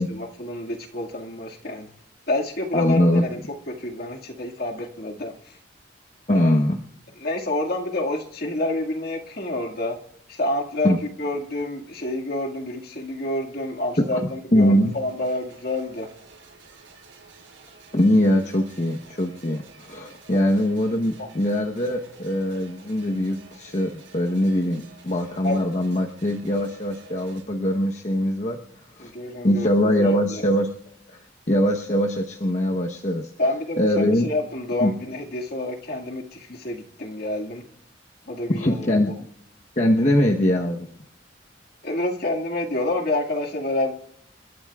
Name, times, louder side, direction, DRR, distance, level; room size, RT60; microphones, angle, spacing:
voice 1, 0.0-1.9 2.3-3.4 3.7-5.6 6.3-6.5 7.2-10.0 10.3-16.1 20.3-20.5 21.2-21.3 25.4-25.6 29.0-30.4 33.4-37.7 38.2-39.2 41.8-43.9, left 2 dB, 55° left, 1 dB, 2.0 m, -28 dB
voice 2, 2.7-3.2 6.3-6.8 10.8-11.0 14.1-14.2 14.5-14.9 17.9-28.6 29.0-29.1 29.4-30.7 31.1-31.2 31.5-33.3 33.8-34.3 34.8-34.9 38.5-39.1 39.8-40.9, left 1 dB, 40° left, 1 dB, 1.0 m, -22 dB
sound 1, 14.6-27.4, right 5 dB, 80° right, 5.8 m, -51 dB
29.5 x 13.0 x 2.4 m, 0.66 s
head